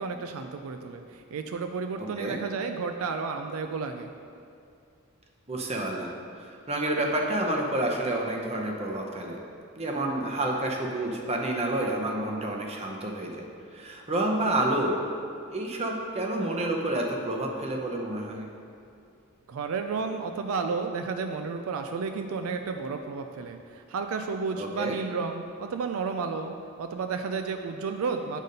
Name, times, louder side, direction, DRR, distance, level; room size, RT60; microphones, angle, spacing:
voice 1, 0.0-4.1 19.5-26.5 26.8-28.4, right 4 dB, 70° right, 6 dB, 0.4 m, -32 dB
voice 2, 2.0-2.4 5.5-6.1 6.4-9.4 9.8-13.4 13.7-15.1 15.5-18.5 24.6-25.0, right 1 dB, 30° right, 1 dB, 0.7 m, -29 dB
8.2 x 4.0 x 5.2 m, 2.4 s
head